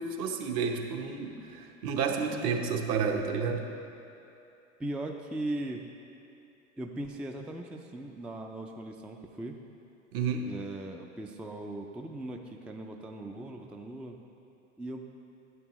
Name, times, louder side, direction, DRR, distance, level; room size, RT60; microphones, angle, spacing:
voice 1, 0.0-3.6 10.1-10.5, right 5 dB, 55° right, 3 dB, 1.0 m, -31 dB
voice 2, 4.8-5.8 6.8-9.6 10.4-14.2 14.8-15.1, right 1 dB, 5° right, 3 dB, 0.3 m, -39 dB
11.0 x 8.5 x 3.0 m, 2.8 s
hypercardioid pair, 90°, 36 cm